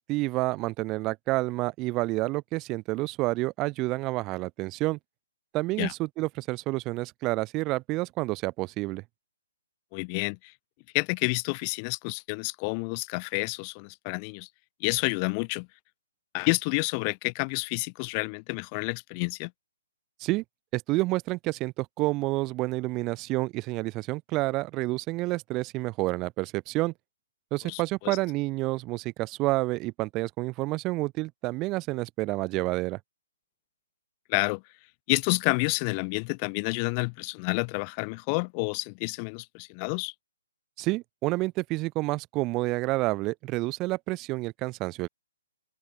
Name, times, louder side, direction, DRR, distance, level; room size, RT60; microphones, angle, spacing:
voice 1, 0.0-5.0 5.5-9.0 20.2-20.4 20.7-26.9 27.5-33.0 40.8-45.1, right 21 dB, 25° right, 1.1 m, -29 dB
voice 2, 9.9-10.5 10.9-14.5 14.8-15.7 16.3-19.5 27.6-28.2 34.3-34.6 35.1-40.1, left 37 dB, 30° left, 1.7 m, -29 dB
open air
figure-of-eight pair, 130°, 0 cm